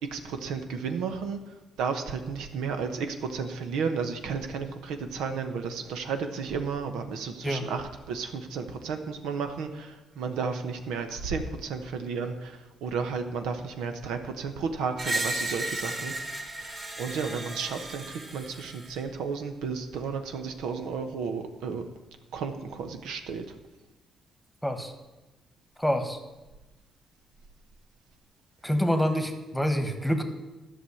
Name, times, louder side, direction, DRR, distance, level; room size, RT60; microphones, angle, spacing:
voice 1, 0.0-1.4 1.8-16.1 16.6-21.8 22.3-23.5, right 5 dB, 90° right, 7 dB, 1.0 m, -33 dB
Screech, 15.0-19.0, right 2 dB, 35° right, 1.9 m, -34 dB
voice 2, 24.6-24.9 25.8-26.2 28.6-30.2, equal, 5° left, 7 dB, 1.4 m, -26 dB
11.5 x 6.1 x 8.5 m, 1.1 s
cardioid pair, 90°, 0 cm